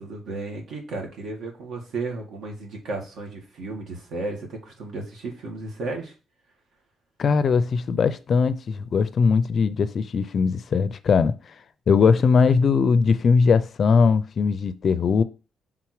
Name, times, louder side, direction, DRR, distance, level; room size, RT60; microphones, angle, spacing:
voice 1, 0.0-6.1, right 3 dB, 75° right, 1.9 m, -34 dB
voice 2, 7.2-11.3 11.9-15.2, left 5 dB, 45° left, 0.4 m, -20 dB
5.8 x 3.7 x 4.7 m
cardioid pair, 145°, 0 cm